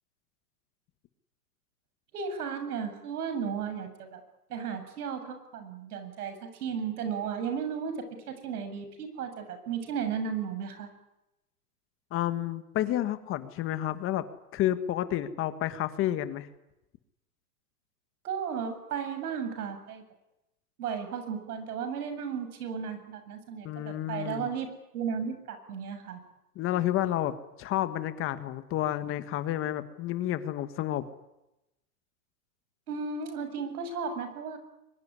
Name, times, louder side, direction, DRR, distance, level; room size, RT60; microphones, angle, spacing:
voice 1, 2.1-4.2 4.5-10.9 18.2-20.0 20.8-26.2 32.9-34.6, right 6 dB, 70° right, 8 dB, 7.8 m, -34 dB
voice 2, 12.1-14.3 14.5-16.5 23.6-24.5 26.5-31.1, left 13 dB, 25° left, 11 dB, 1.5 m, -30 dB
23.5 x 22.5 x 9.8 m, 0.92 s
hypercardioid pair, 145°, 46 cm